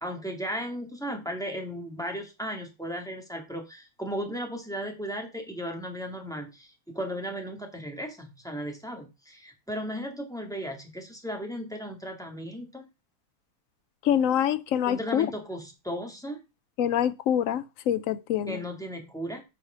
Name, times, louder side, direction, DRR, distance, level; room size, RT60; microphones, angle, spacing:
voice 1, 0.0-12.8 14.9-16.4 18.5-19.4, equal, ahead, 1.9 m, -35 dB
voice 2, 14.0-15.3 16.8-18.6, left 10 dB, 75° left, 0.7 m, -25 dB
8.4 x 4.9 x 5.6 m
omnidirectional pair, 2.0 m